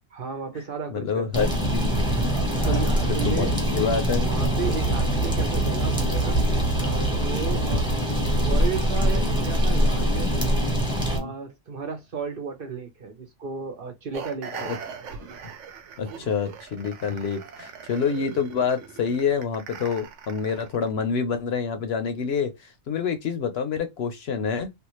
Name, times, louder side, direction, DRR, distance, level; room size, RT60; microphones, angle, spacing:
voice 1, 0.1-1.3 2.3-3.6 4.2-7.8 8.3-10.3 11.1-14.8, right 5 dB, 55° right, 0.9 m, -34 dB
voice 2, 0.9-2.2 2.6-2.8 3.1-3.5 3.7-4.3 7.6-7.8 11.1-11.3 14.6-14.8 16.0-24.7, left 6 dB, 65° left, 0.9 m, -27 dB
sound 1, 1.3-11.2, right 1 dB, 5° right, 0.9 m, -23 dB
sound 2, 14.1-20.9, right 6 dB, 80° right, 1.0 m, -40 dB
3.4 x 2.4 x 3.0 m
omnidirectional pair, 1.2 m